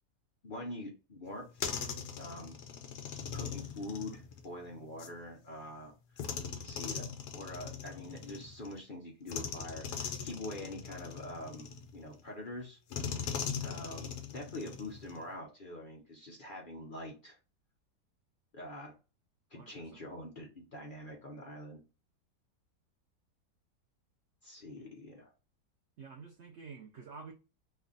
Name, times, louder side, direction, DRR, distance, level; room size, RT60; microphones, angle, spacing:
voice 1, 0.4-1.7 2.2-2.6 3.3-6.3 6.6-7.1 7.3-12.8 13.6-17.4 18.5-18.9 19.5-21.8 24.4-25.3, left 1 dB, 40° left, 0.7 m, -45 dB
sound 1, 1.3-5.2 6.2-8.8 9.3-12.2 12.9-15.3, left 7 dB, 70° left, 1.3 m, -41 dB
voice 2, 19.5-20.1 24.8-24.9 26.0-27.3, right 5 dB, 85° right, 0.6 m, -50 dB
3.3 x 2.3 x 3.8 m
omnidirectional pair, 1.9 m